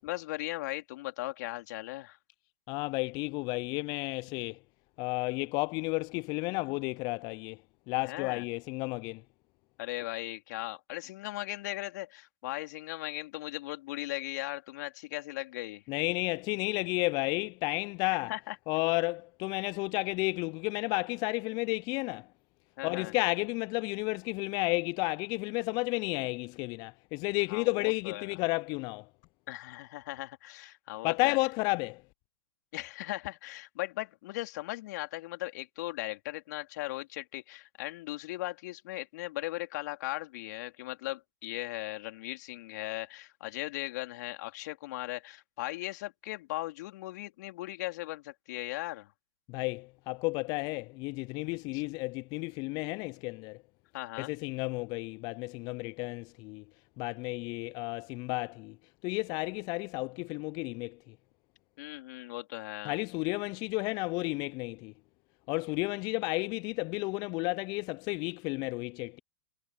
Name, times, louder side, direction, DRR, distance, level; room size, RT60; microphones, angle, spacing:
voice 1, 0.0-2.2 8.0-8.4 9.8-15.8 18.3-18.5 22.8-23.1 27.5-28.3 29.5-31.4 32.7-49.1 51.7-51.8 53.9-54.3 61.8-63.0, left 18 dB, 60° left, 3.4 m, -38 dB
voice 2, 2.7-4.6 5.0-7.6 7.9-9.2 15.9-18.3 18.7-22.3 22.8-29.1 31.0-32.0 49.5-53.6 54.2-56.6 57.0-58.8 59.0-61.1 62.8-64.9 65.5-69.2, left 26 dB, 40° left, 0.4 m, -32 dB
hypercardioid pair, 105°, 11 cm